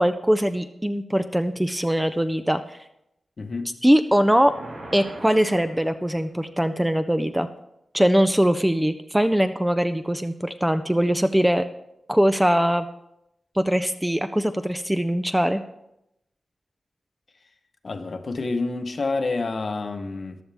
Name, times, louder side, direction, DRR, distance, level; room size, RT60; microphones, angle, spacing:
voice 1, 0.0-2.8 3.8-4.5 4.9-7.5 7.9-11.6 12.1-12.9 13.6-15.6, equal, 5° right, 9 dB, 0.4 m, -21 dB
voice 2, 3.4-3.7 17.8-20.4, left 3 dB, 45° left, 7 dB, 0.9 m, -28 dB
sound 1, 4.1-6.5, right 1 dB, 65° right, 4.7 m, -42 dB
14.0 x 11.5 x 3.5 m, 0.83 s
wide cardioid pair, 160°, 0 cm